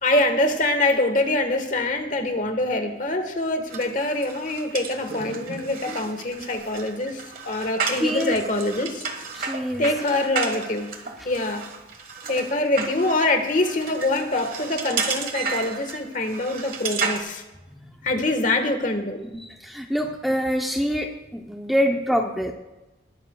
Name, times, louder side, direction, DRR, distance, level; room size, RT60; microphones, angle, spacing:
voice 1, 0.0-9.0 9.8-10.9 11.2-11.6 12.3-17.4 18.0-19.2, left 2 dB, 40° left, 6 dB, 1.4 m, -24 dB
sound 1, 3.7-17.2, right 5 dB, 45° right, 1.4 m, -32 dB
voice 2, 8.0-8.4 9.3-9.9 19.2-22.5, equal, ahead, 1 dB, 0.7 m, -25 dB
20.5 x 12.5 x 2.3 m, 1.0 s
head